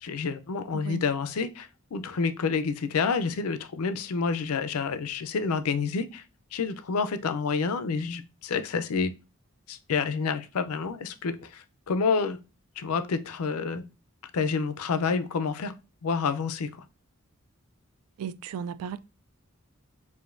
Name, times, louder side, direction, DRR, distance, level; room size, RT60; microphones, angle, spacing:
voice 1, 0.0-6.2 6.5-9.1 9.7-12.4 12.8-13.8 14.3-15.7 16.0-16.7, left 5 dB, 85° left, 0.5 m, -28 dB
voice 2, 0.7-1.0 18.2-19.0, right 8 dB, 85° right, 0.3 m, -35 dB
5.0 x 2.6 x 2.5 m
head